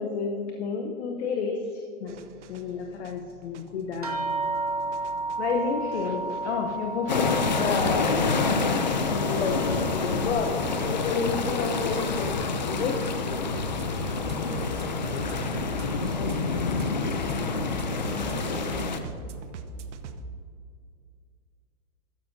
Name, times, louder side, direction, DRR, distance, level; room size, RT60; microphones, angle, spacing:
voice 1, 0.0-2.2 2.5-4.4 5.4-8.3 9.1-10.6 10.8-12.3 12.7-13.0 16.0-17.1, left 5 dB, 50° left, 3 dB, 0.8 m, -31 dB
sound 1, 2.1-20.3, right 3 dB, 55° right, 0.8 m, -43 dB
sound 2, 4.0-12.9 13.2-14.0 14.8-14.9 15.3-15.5, right 3 dB, 30° right, 0.4 m, -35 dB
sound 3, 7.1-19.0, left 4 dB, 35° left, 0.4 m, -27 dB
voice 2, 14.3-15.5 17.9-19.1, left 1 dB, 20° left, -9 dB, 2.3 m, -42 dB
12.5 x 9.3 x 2.6 m, 2.3 s
hypercardioid pair, 170°, 42 cm